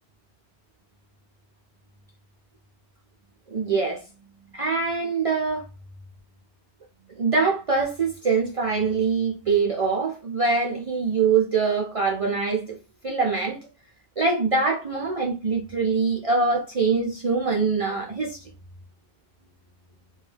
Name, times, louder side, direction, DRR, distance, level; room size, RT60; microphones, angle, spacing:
voice 1, 3.5-4.0 4.5-5.7 7.1-12.8 13.0-13.6 14.2-18.4, right 4 dB, 60° right, 0.3 m, -24 dB
2.3 x 2.2 x 3.2 m
omnidirectional pair, 1.2 m